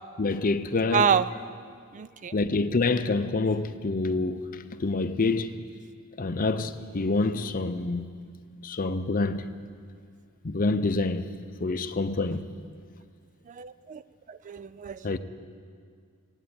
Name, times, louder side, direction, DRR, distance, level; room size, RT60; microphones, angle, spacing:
voice 1, 0.2-1.1 2.3-4.4 4.8-5.5 6.2-8.1 8.6-9.5 10.4-11.2 11.6-12.5 15.0-15.2, left 3 dB, 40° left, 0.6 m, -26 dB
voice 2, 0.9-1.3 1.5-1.6 1.9-2.3 13.5-14.0 14.3-15.1, right 7 dB, 35° right, 0.3 m, -27 dB
19.0 x 8.9 x 8.4 m
head